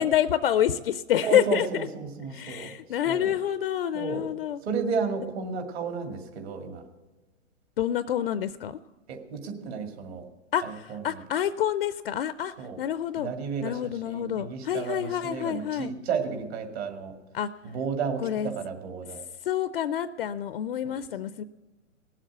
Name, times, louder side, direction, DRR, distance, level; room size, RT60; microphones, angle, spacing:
voice 1, 0.0-1.9 2.3-4.6 7.8-8.8 10.5-13.3 13.6-15.9 17.3-17.5 18.2-18.5 19.4-21.4, left 10 dB, 50° left, 15 dB, 0.4 m, -27 dB
voice 2, 1.2-2.7 3.0-3.3 3.9-4.2 4.6-6.8 9.1-10.2 10.6-11.2 12.6-12.8 13.2-17.1 17.6-19.2 20.8-20.9, right 5 dB, 50° right, 5 dB, 2.3 m, -32 dB
18.0 x 7.4 x 7.9 m, 1.2 s
hypercardioid pair, 135°, 39 cm